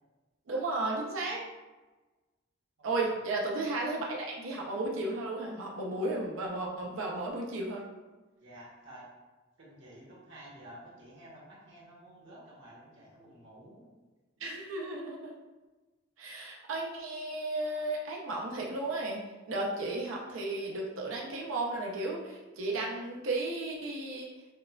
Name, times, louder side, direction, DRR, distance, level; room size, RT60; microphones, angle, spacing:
voice 1, 0.5-1.4 2.8-7.8 14.4-15.3 16.2-19.2 19.5-24.3, right 2 dB, 90° right, -1 dB, 0.6 m, -34 dB
voice 2, 2.8-3.2 8.4-9.1 9.6-13.9, right 1 dB, 70° right, -5 dB, 1.2 m, -52 dB
6.3 x 2.2 x 2.4 m, 1.2 s
head